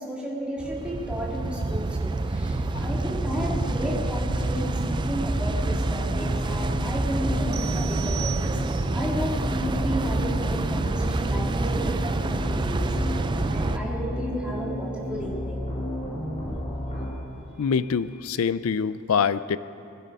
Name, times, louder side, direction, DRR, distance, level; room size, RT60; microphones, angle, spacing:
voice 1, 0.0-15.7 17.6-17.7, equal, 5° right, -4 dB, 2.2 m, -33 dB
sound 1, 0.6-13.8, right 2 dB, 20° right, 0.3 m, -28 dB
sound 2, 2.4-17.1, left 1 dB, 30° left, 3.3 m, -32 dB
sound 3, 7.5-9.0, right 16 dB, 90° right, 0.7 m, -38 dB
voice 2, 17.6-19.6, left 6 dB, 85° left, 16 dB, 0.4 m, -24 dB
19.5 x 12.0 x 5.3 m, 2.7 s
head